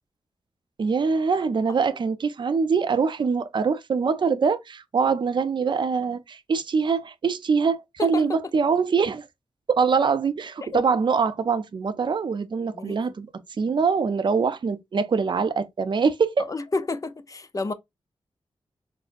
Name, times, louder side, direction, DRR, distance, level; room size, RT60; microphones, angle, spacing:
voice 1, 0.8-9.3 9.7-13.3 13.6-16.5, right 5 dB, 50° right, 0.4 m, -23 dB
voice 2, 16.5-17.7, left 3 dB, 35° left, 0.5 m, -30 dB
4.0 x 2.0 x 2.5 m
cardioid pair, 60°, 10 cm